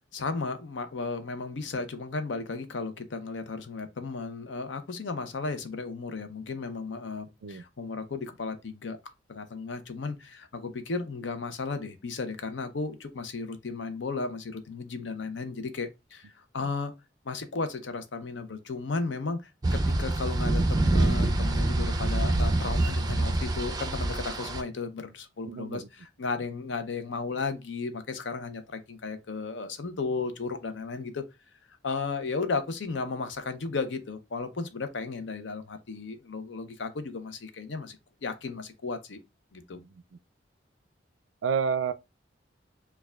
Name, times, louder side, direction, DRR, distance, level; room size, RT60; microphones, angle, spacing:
voice 1, 0.1-9.0 9.3-16.9 17.2-31.2 31.8-39.2 39.5-39.8, left 4 dB, 75° left, 0.6 m, -34 dB
sound 1, 19.6-24.6, right 2 dB, 20° right, 0.5 m, -26 dB
voice 2, 25.4-25.9 39.7-39.9 41.4-41.9, right 6 dB, 85° right, 0.4 m, -29 dB
6.4 x 2.3 x 2.3 m
head